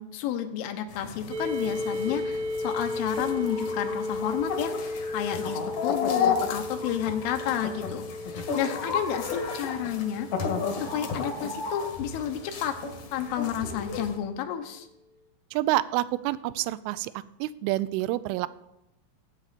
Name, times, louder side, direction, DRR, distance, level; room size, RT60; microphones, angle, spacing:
voice 1, 0.0-4.7 5.1-10.3 10.8-12.8 13.1-14.9, left 10 dB, 80° left, 6 dB, 3.4 m, -31 dB
sound 1, 0.9-14.2, left 5 dB, 60° left, 1.9 m, -33 dB
sound 2, 1.3-13.0, left 2 dB, 65° right, 2.3 m, -35 dB
voice 2, 15.5-17.1 17.4-18.5, right 16 dB, 85° right, 17 dB, 3.0 m, -27 dB
19.0 x 8.8 x 4.2 m, 0.90 s
omnidirectional pair, 5.7 m